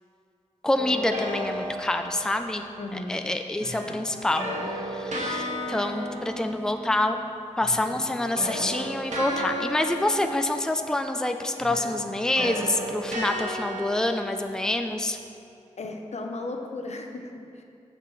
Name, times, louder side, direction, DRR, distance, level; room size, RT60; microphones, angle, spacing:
voice 1, 0.6-2.6 2.9-7.2 7.6-15.2, left 1 dB, 5° left, 6 dB, 0.5 m, -27 dB
sound 1, 0.8-2.7 3.6-7.3 7.5-11.2 11.6-15.0, equal, 75° right, 1.6 m, -34 dB
voice 2, 2.8-3.2 15.8-17.6, left 2 dB, 65° left, 3 dB, 0.9 m, -35 dB
14.5 x 6.8 x 3.2 m, 2.5 s
cardioid pair, 55°, 12 cm